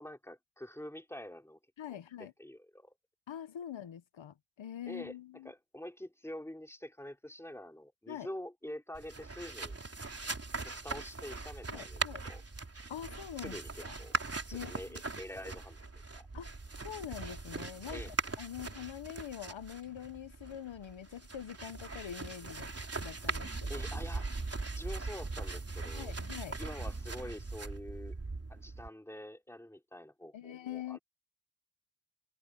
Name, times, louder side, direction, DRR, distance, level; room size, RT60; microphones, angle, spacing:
voice 1, 0.0-1.6 1.9-2.9 4.9-5.1 5.4-9.8 10.6-12.4 13.4-14.2 14.5-15.8 16.1-16.3 17.9-18.1 23.7-24.3 24.8-26.1 26.6-28.2 28.5-31.0, left 1 dB, 5° left, 3.2 m, -46 dB
voice 2, 1.8-2.3 3.3-5.5 8.1-8.3 11.7-12.2 12.9-14.0 14.5-15.0 16.3-16.5 16.8-18.0 18.4-22.7 23.0-23.7 25.9-26.6 30.3-31.0, left 10 dB, 85° left, 1.0 m, -44 dB
sound 1, 8.9-28.9, right 3 dB, 30° right, 3.4 m, -40 dB
wide cardioid pair, 110°, 44 cm